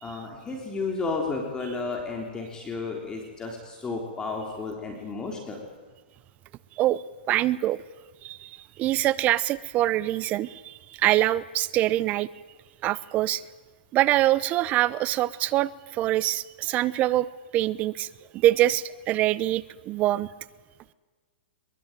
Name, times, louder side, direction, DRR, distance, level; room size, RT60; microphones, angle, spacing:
voice 1, 0.0-5.6, left 3 dB, 15° left, 2 dB, 3.4 m, -32 dB
voice 2, 7.3-7.8 8.2-8.5 8.8-12.3 12.8-13.4 13.9-17.3 17.5-18.1 18.3-20.3, right 14 dB, 25° right, 19 dB, 0.8 m, -24 dB
22.5 x 22.0 x 9.1 m, 1.4 s
hypercardioid pair, 145°, 6 cm